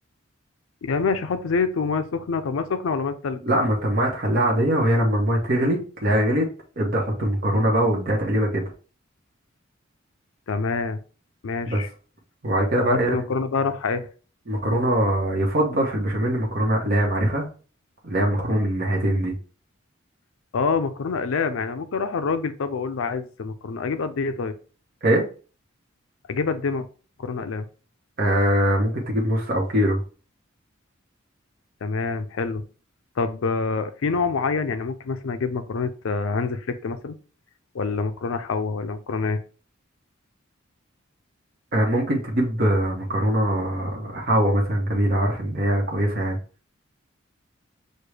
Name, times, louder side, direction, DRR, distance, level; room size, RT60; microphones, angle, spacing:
voice 1, 0.8-3.4 10.5-11.0 11.4-11.9 12.8-14.1 20.5-24.5 26.3-26.9 27.2-27.7 31.8-32.6 33.2-37.2 37.7-39.4, left 4 dB, 85° left, 9 dB, 0.5 m, -26 dB
voice 2, 3.4-6.5 6.8-8.6 11.7-11.8 12.4-13.2 14.5-17.5 18.0-19.3 25.0-25.2 28.2-30.0 41.7-46.4, right 1 dB, 50° right, -1 dB, 0.9 m, -22 dB
6.4 x 2.2 x 3.2 m, 0.38 s
head